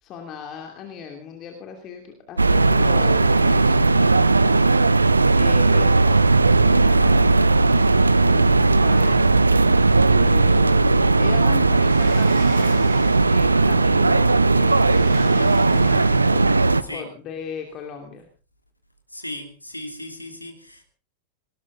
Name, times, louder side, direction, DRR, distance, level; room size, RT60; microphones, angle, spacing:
voice 1, 0.0-6.2 6.5-9.3 10.1-18.3, left 6 dB, 35° left, 2.8 m, -38 dB
sound 1, 2.4-16.8, right 3 dB, 80° right, 0.7 m, -17 dB
Sliding door, 11.6-13.5 14.5-16.6, right 4 dB, 55° right, 7.2 m, -39 dB
voice 2, 19.1-20.8, left 1 dB, 85° left, 2.9 m, -36 dB
19.5 x 19.0 x 3.8 m
figure-of-eight pair, 90°, 0 cm